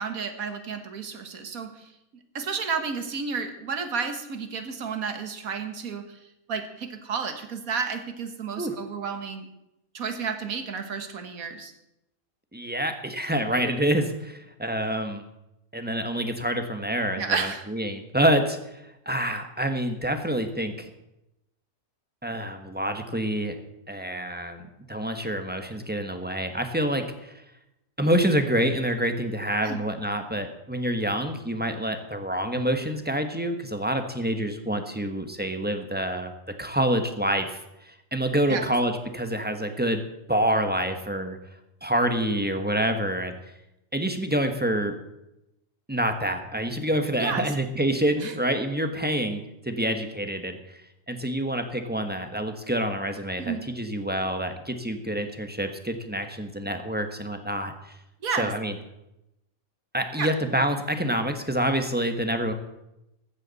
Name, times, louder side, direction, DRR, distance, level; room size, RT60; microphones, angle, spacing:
voice 1, 0.0-1.8 2.3-6.0 6.5-9.5 9.9-11.7 17.2-17.6 29.6-29.8 38.5-38.7 47.2-47.5 48.2-48.3 53.4-53.6 58.2-58.5 60.2-60.3, right 5 dB, 75° right, 7 dB, 1.8 m, -31 dB
voice 2, 12.5-15.2 15.7-20.9 22.2-23.5 23.9-27.3 28.0-36.3 36.6-40.0 40.3-41.4 41.8-43.3 43.9-44.9 45.9-50.8 51.1-57.9 58.4-58.8 59.9-62.5, right 1 dB, 10° right, 6 dB, 1.1 m, -27 dB
15.5 x 12.5 x 4.1 m, 0.88 s
omnidirectional pair, 1.5 m